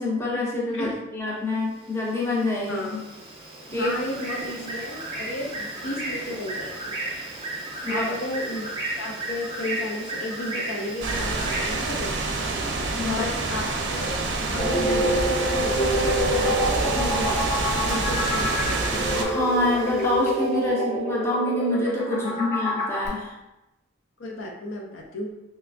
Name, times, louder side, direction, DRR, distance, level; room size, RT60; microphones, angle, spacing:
voice 1, 0.0-3.0 3.7-3.9 7.8-8.0 12.6-12.7 13.0-13.2 19.1-23.3, left 2 dB, 15° left, -4 dB, 0.6 m, -26 dB
Bird, 1.7-20.5, right 2 dB, 30° right, 0.7 m, -36 dB
voice 2, 3.7-6.9 7.9-8.7 9.0-12.1 13.1-13.6 13.9-14.2 14.5-18.8 22.2-22.5 24.2-25.3, left 1 dB, 80° left, 0 dB, 0.6 m, -33 dB
sound 1, 11.0-19.2, right 3 dB, 65° right, 0.5 m, -27 dB
sound 2, 14.6-23.1, equal, 40° left, 0.8 m, -26 dB
3.2 x 3.0 x 2.6 m, 0.94 s
head